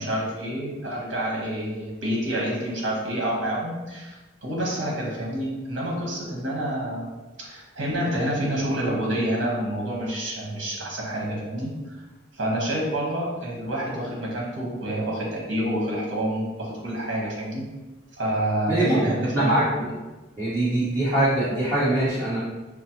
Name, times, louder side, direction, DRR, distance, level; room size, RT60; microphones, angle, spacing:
voice 1, 0.0-7.1 7.4-12.0 12.3-17.6 18.2-19.6, right 1 dB, 75° right, -4 dB, 1.1 m, -28 dB
voice 2, 18.7-19.0 19.3-19.8 20.4-22.4, right 1 dB, 20° right, -14 dB, 1.2 m, -23 dB
5.6 x 2.0 x 2.9 m, 1.1 s
head